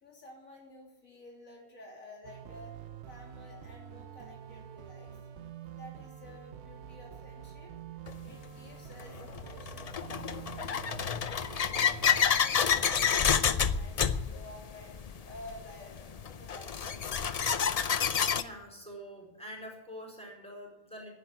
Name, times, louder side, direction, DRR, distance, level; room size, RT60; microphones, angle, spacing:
voice 1, 0.0-2.8 3.1-5.2 5.8-7.7 8.2-11.3 11.7-17.6, left 1 dB, 85° left, -1 dB, 3.5 m, -51 dB
sound 1, 2.2-12.2, right 9 dB, 60° right, 0.9 m, -47 dB
sound 2, 8.1-8.2 9.0-18.4, left 7 dB, 50° left, 0.4 m, -29 dB
voice 2, 18.3-21.1, equal, 5° left, -2 dB, 4.4 m, -45 dB
10.5 x 10.5 x 9.7 m, 1.0 s
omnidirectional pair, 1.4 m